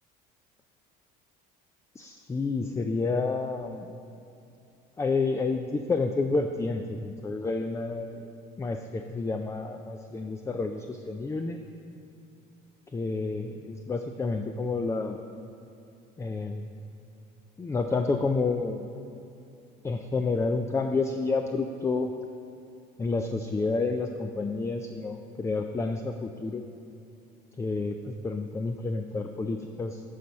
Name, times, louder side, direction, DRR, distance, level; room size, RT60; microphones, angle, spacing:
voice 1, 2.0-3.9 5.0-8.3 8.6-11.6 12.9-15.2 16.2-16.7 17.6-18.8 19.8-22.1 23.0-26.6 27.6-30.0, left 3 dB, 15° left, 6 dB, 0.3 m, -29 dB
11.0 x 4.1 x 5.3 m, 2.8 s
supercardioid pair, 100°, 20 cm